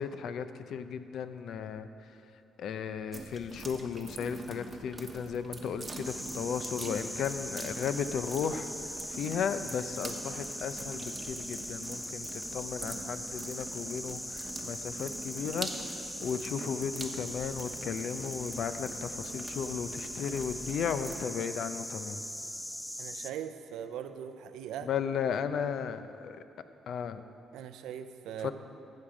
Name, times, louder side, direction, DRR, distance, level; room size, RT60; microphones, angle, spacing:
voice 1, 0.0-1.9 2.6-8.7 9.1-15.7 16.2-22.2 24.8-26.4 26.9-27.2 28.4-28.5, left 7 dB, 70° left, 11 dB, 0.5 m, -35 dB
sound 1, 3.1-21.2, right 3 dB, 25° right, 1.0 m, -45 dB
sound 2, 6.0-23.3, equal, 5° left, 0.5 m, -40 dB
voice 2, 23.0-24.9 27.5-28.5, right 9 dB, 90° right, 10 dB, 0.5 m, -40 dB
14.5 x 6.6 x 5.0 m, 2.8 s
cardioid pair, 90°, 0 cm